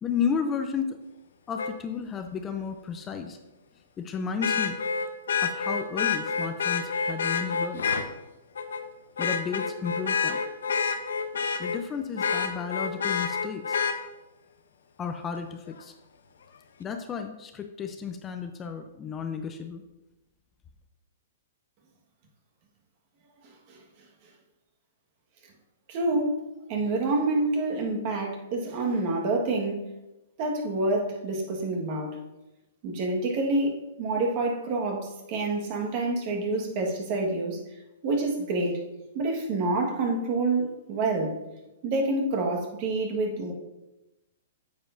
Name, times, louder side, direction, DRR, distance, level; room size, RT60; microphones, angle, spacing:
voice 1, 0.0-1.0 1.5-3.4 4.0-4.8 5.4-7.9 9.2-10.4 11.6-14.1 15.0-15.9 16.8-19.8, left 6 dB, 20° left, 6 dB, 0.5 m, -33 dB
Vehicle horn car horn honking, 1.6-1.7 4.4-8.0 8.6-8.8 9.2-11.8 12.2-14.0 15.8-15.9, left 5 dB, 80° left, 0.7 m, -28 dB
voice 2, 25.9-26.4 26.7-29.9 30.4-32.2 32.8-37.6 38.0-38.8 39.1-41.3 41.8-43.5, right 2 dB, 45° right, 1 dB, 1.5 m, -27 dB
8.8 x 6.9 x 2.6 m, 0.99 s
hypercardioid pair, 140°, 0 cm